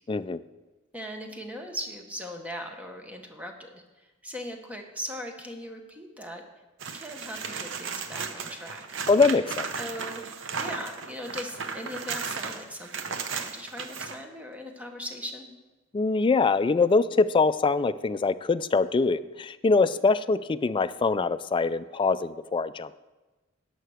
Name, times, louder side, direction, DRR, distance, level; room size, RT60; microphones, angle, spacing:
voice 1, 0.1-0.4 9.1-9.7 15.9-23.0, left 4 dB, 25° left, 14 dB, 0.3 m, -23 dB
voice 2, 0.9-6.4 6.9-8.8 9.8-15.5, equal, 5° right, 3 dB, 1.1 m, -39 dB
sound 1, 6.8-14.2 16.8-16.9, right 5 dB, 65° right, 0.8 m, -35 dB
11.0 x 5.8 x 6.4 m, 1.2 s
head